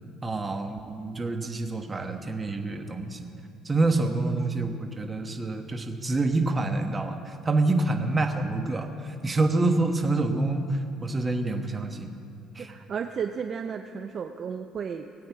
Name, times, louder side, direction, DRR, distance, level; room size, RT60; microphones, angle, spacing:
voice 1, 0.2-3.3 3.6-8.9 9.2-10.6 11.0-12.1 12.6-12.7, right 2 dB, 25° right, 5 dB, 1.2 m, -27 dB
voice 2, 12.6-15.3, right 6 dB, 45° right, 7 dB, 0.5 m, -34 dB
20.0 x 8.6 x 4.7 m, 2.5 s
cardioid pair, 115°, 0 cm